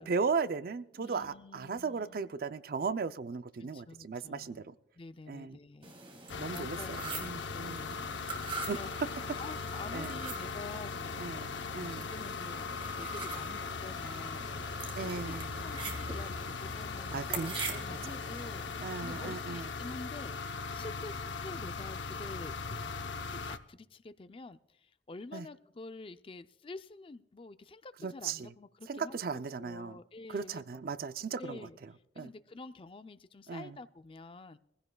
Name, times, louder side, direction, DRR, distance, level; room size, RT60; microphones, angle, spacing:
voice 1, 0.0-4.7 5.3-5.6 6.4-7.8 8.7-8.8 9.9-10.2 11.2-12.1 15.0-15.7 17.1-18.2 18.8-19.6 25.3-25.5 28.0-28.5 28.9-30.0 30.3-31.6 32.2-32.3 33.5-33.8, right 5 dB, 55° right, 13 dB, 0.4 m, -37 dB
voice 2, 0.9-2.2 3.6-4.7 5.0-5.9 6.2-8.9 9.4-11.4 11.7-14.6 15.0-15.4 15.6-22.9 23.3-30.6 31.4-31.8 32.1-34.6, left 3 dB, 30° left, 12 dB, 0.4 m, -48 dB
sound 1, 5.8-19.3, right 3 dB, 30° right, 1.9 m, -44 dB
sound 2, 6.3-23.6, left 4 dB, 85° left, 0.7 m, -39 dB
22.5 x 15.5 x 2.3 m, 0.85 s
head